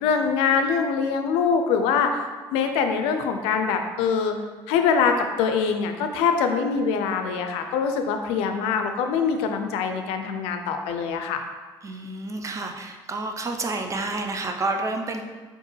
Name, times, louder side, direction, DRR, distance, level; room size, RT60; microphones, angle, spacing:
voice 1, 0.0-2.2 2.5-4.3 4.7-11.4, left 6 dB, 85° left, 6 dB, 0.4 m, -23 dB
voice 2, 11.8-15.2, right 2 dB, 30° right, 4 dB, 0.5 m, -29 dB
4.5 x 2.5 x 3.1 m, 1.4 s
supercardioid pair, 70°, 10 cm